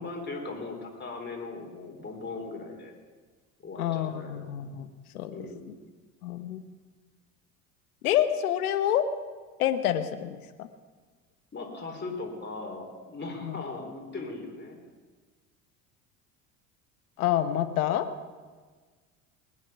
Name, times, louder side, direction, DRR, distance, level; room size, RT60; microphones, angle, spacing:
voice 1, 0.0-2.9 3.6-4.6 5.3-5.7 11.5-14.8, left 3 dB, 25° left, 1 dB, 4.2 m, -38 dB
voice 2, 3.8-4.9 5.1-5.3 6.2-6.6 8.0-9.0 9.6-10.7 13.4-13.6 17.2-18.1, left 11 dB, 80° left, 11 dB, 1.1 m, -27 dB
21.0 x 9.6 x 6.0 m, 1.4 s
hypercardioid pair, 70°, 43 cm